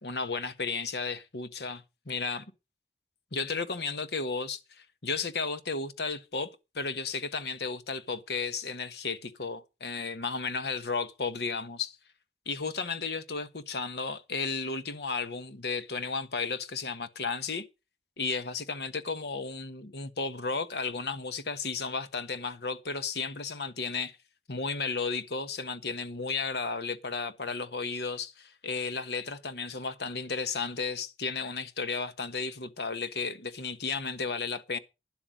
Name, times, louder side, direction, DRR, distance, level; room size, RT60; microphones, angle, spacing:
voice 1, 0.0-2.5 3.3-12.0 12.5-17.7 18.2-24.2 24.5-34.8, left 4 dB, 70° left, 1.3 m, -34 dB
12.0 x 10.5 x 5.1 m
head